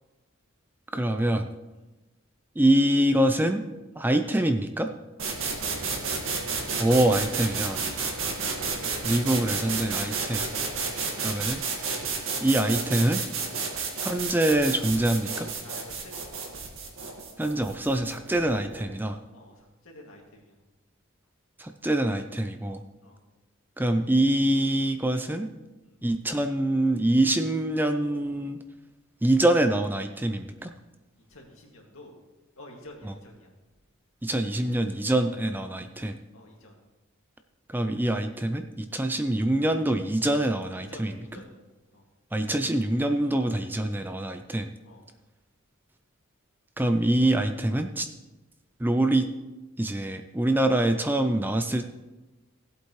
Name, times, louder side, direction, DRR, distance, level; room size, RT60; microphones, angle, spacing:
voice 1, 0.9-1.5 2.6-3.6 4.0-4.9 6.8-7.8 9.0-10.5 11.2-11.6 12.4-13.2 14.0-15.5 17.4-19.2 21.6-22.8 23.8-25.5 26.0-28.6 29.2-30.7 33.0-33.1 34.2-36.2 37.7-41.2 42.3-44.7 46.8-48.1 48.8-49.2 49.8-51.9, right 1 dB, 10° right, 7 dB, 0.4 m, -25 dB
sound 1, 5.2-18.9, right 4 dB, 70° right, 1.8 m, -31 dB
voice 2, 5.3-5.9 8.0-8.2 10.7-10.9 15.6-16.6 19.3-20.5 23.0-23.2 25.8-26.0 31.3-32.1 32.6-33.5 36.3-36.7 40.7-41.6 41.9-42.0 44.8-45.1, left 1 dB, 75° left, 0 dB, 2.3 m, -49 dB
17.0 x 8.1 x 3.2 m, 1.1 s
head